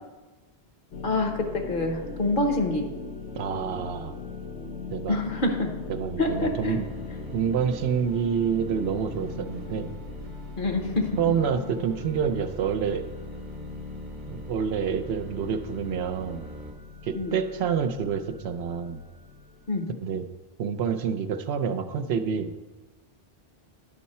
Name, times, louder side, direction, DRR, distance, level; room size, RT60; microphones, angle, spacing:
sound 1, 0.9-19.8, left 4 dB, 80° left, 1.0 m, -40 dB
voice 1, 1.0-2.9 5.1-5.7 6.2-6.8 10.6-11.1 17.1-17.3 19.7-19.9, left 2 dB, 55° left, 3 dB, 1.2 m, -26 dB
voice 2, 3.3-4.1 4.9-5.2 5.9-6.9 7.3-9.9 11.2-13.0 14.3-16.4 17.0-19.0 20.0-20.2 20.6-22.5, right 7 dB, 75° right, 9 dB, 0.8 m, -27 dB
sound 2, 6.3-16.7, right 3 dB, 45° right, 1.0 m, -45 dB
11.0 x 5.6 x 4.2 m, 1.2 s
omnidirectional pair, 1.1 m